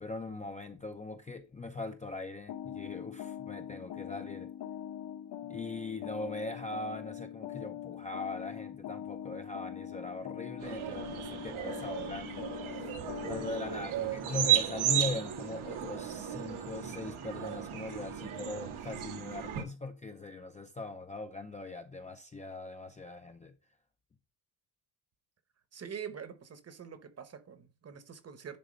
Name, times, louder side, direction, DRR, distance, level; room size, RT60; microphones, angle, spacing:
voice 1, 0.0-4.5 5.5-12.5 12.8-12.9 13.3-23.5, left 3 dB, 15° left, 0.5 m, -40 dB
sound 1, 2.5-13.8, left 10 dB, 60° left, 1.0 m, -42 dB
sound 2, 10.6-19.6, right 10 dB, 90° right, 1.8 m, -34 dB
voice 2, 25.7-28.6, right 7 dB, 30° right, 1.0 m, -45 dB
10.5 x 4.0 x 5.1 m
cardioid pair, 170°, 47 cm